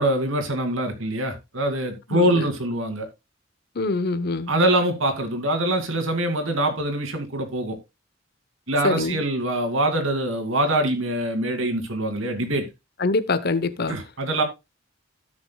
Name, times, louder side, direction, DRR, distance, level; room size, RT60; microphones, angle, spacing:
voice 1, 0.0-3.1 4.5-7.8 8.7-12.6 13.9-14.4, right 1 dB, 75° right, 2.5 m, -24 dB
voice 2, 2.1-2.5 3.7-4.5 8.8-9.2 13.0-14.0, left 3 dB, 50° left, 0.9 m, -24 dB
16.5 x 6.3 x 2.3 m
head